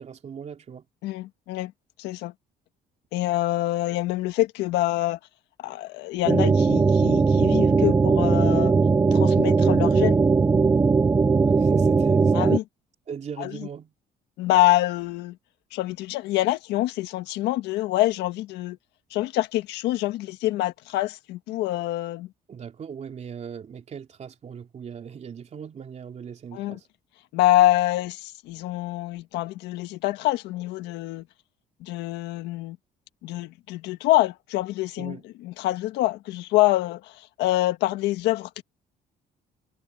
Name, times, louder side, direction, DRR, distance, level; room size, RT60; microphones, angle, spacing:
voice 1, 0.0-0.8 11.4-12.5 13.1-13.9 22.5-26.9 35.0-35.2, right 7 dB, 40° right, 3.1 m, -38 dB
voice 2, 1.0-1.7 2.0-2.3 3.1-5.2 5.6-8.7 9.1-10.2 12.3-12.6 13.4-13.7 14.4-15.4 15.7-18.8 19.1-22.3 26.5-26.8 27.3-31.2 31.8-32.8 33.2-38.6, left 16 dB, 90° left, 1.6 m, -25 dB
sound 1, 6.3-12.6, right 4 dB, 15° right, 0.4 m, -19 dB
cardioid pair, 110°, 17 cm